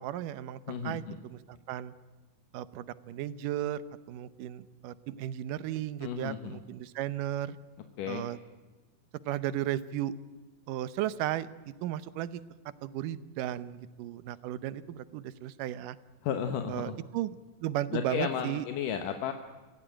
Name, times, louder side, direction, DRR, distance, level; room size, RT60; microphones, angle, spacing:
voice 1, 0.0-1.9 2.5-3.8 4.1-7.6 8.1-8.4 9.3-10.1 10.7-11.5 11.8-12.4 12.8-16.0 16.7-18.7, right 12 dB, 85° right, 16 dB, 2.5 m, -35 dB
voice 2, 0.7-1.2 6.0-6.6 8.0-8.2 16.2-17.0 17.9-19.3, left 8 dB, 80° left, 7 dB, 2.8 m, -33 dB
24.5 x 16.5 x 9.0 m, 1.3 s
omnidirectional pair, 3.7 m